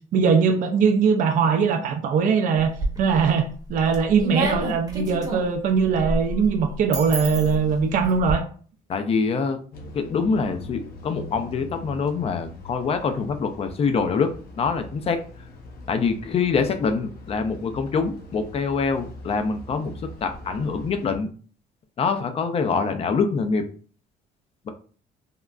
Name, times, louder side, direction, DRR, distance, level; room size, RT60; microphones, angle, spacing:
voice 1, 0.1-2.7 3.0-8.4, right 6 dB, 50° right, 5 dB, 0.4 m, -21 dB
sound 1, 2.6-3.3 3.7-8.3, right 1 dB, 20° right, 0.8 m, -30 dB
voice 2, 8.9-9.6 9.9-15.2 15.9-21.3 22.0-23.7, left 5 dB, 35° left, 7 dB, 0.4 m, -25 dB
sound 2, 9.7-21.2, left 1 dB, 60° left, 0.7 m, -42 dB
3.6 x 2.1 x 2.3 m, 0.42 s
cardioid pair, 110°, 17 cm